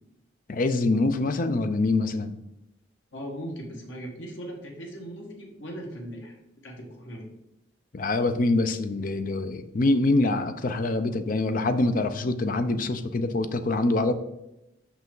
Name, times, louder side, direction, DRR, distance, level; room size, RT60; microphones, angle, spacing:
voice 1, 0.5-2.4 7.9-14.1, left 2 dB, 45° left, 9 dB, 0.5 m, -25 dB
voice 2, 3.1-6.4 6.6-7.2, equal, 75° left, 0 dB, 1.6 m, -38 dB
5.8 x 5.5 x 3.8 m, 0.89 s
head